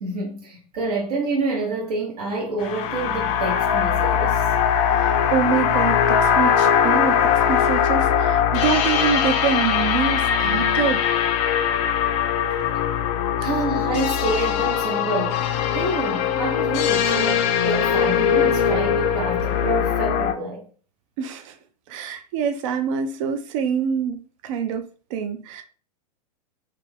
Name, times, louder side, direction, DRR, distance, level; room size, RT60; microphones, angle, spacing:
voice 1, 0.0-4.4 13.4-20.6, right 2 dB, 70° right, 0.9 m, -28 dB
sound 1, 2.6-20.3, left 8 dB, 35° left, 0.4 m, -21 dB
voice 2, 4.9-11.0 21.2-21.6 21.9-24.9 25.1-25.6, right 7 dB, 50° right, 0.5 m, -25 dB
2.4 x 2.3 x 3.2 m
hypercardioid pair, 100°, 20 cm